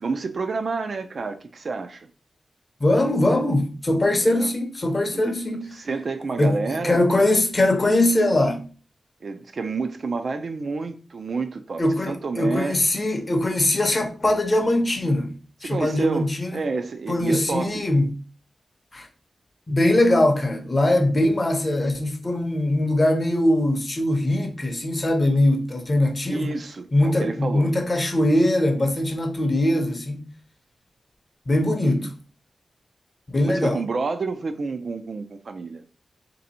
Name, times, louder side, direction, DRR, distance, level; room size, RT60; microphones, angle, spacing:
voice 1, 0.0-2.1 4.3-4.5 5.1-7.0 9.2-12.8 15.6-17.8 26.3-27.7 31.8-32.1 33.4-35.8, right 4 dB, 50° right, 0.4 m, -29 dB
voice 2, 2.8-5.7 6.4-8.7 11.8-15.3 15.6-16.6 17.1-18.1 18.9-19.1 19.7-26.5 26.9-30.3 31.5-32.1 33.3-33.8, left 1 dB, 25° left, 0.6 m, -21 dB
3.4 x 2.7 x 4.1 m
wide cardioid pair, 165°, 0 cm